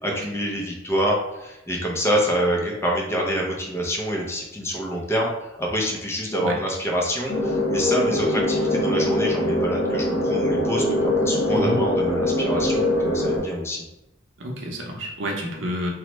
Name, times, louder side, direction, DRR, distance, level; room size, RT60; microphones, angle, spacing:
voice 1, 0.0-5.3 5.6-13.8, equal, 15° left, -1 dB, 0.4 m, -26 dB
sound 1, 7.3-13.4, left 1 dB, 75° left, 0.8 m, -23 dB
voice 2, 11.5-11.9 14.4-15.9, equal, 70° right, -1 dB, 0.6 m, -29 dB
2.9 x 2.1 x 3.0 m, 0.93 s
head